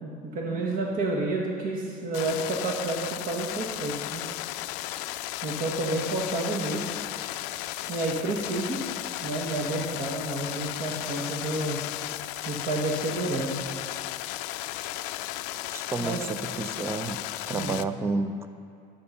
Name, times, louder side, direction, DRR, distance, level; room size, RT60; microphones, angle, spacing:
voice 1, 0.0-4.3 5.4-6.9 7.9-8.8 9.2-11.8 12.4-13.6 16.0-16.2 17.5-17.8, right 2 dB, 45° right, -1 dB, 1.5 m, -30 dB
sound 1, 2.1-17.8, left 15 dB, 85° left, 0.4 m, -35 dB
voice 2, 15.7-17.2 17.5-18.5, right 3 dB, 15° right, 10 dB, 0.4 m, -31 dB
11.0 x 8.6 x 5.6 m, 2.6 s
cardioid pair, 135°, 20 cm